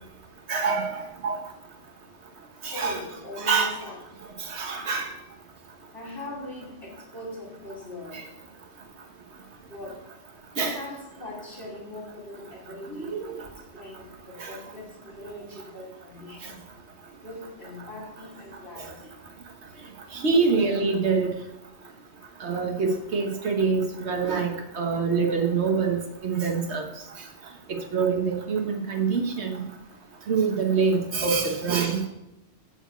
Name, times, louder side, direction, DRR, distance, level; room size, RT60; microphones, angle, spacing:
voice 1, 0.5-1.4 2.6-3.0 3.4-3.7 4.4-5.1 10.6-10.8 13.1-13.3 14.4-14.6 18.8-18.9 20.1-21.3 22.4-26.8 27.7-29.6 30.3-32.0, right 5 dB, 75° right, 3 dB, 1.5 m, -25 dB
voice 2, 2.7-4.0 5.9-8.3 9.7-10.1 10.6-16.7 17.2-19.2 31.4-31.7, left 2 dB, 55° left, -5 dB, 2.9 m, -41 dB
8.7 x 5.2 x 7.8 m, 0.88 s
omnidirectional pair, 1.1 m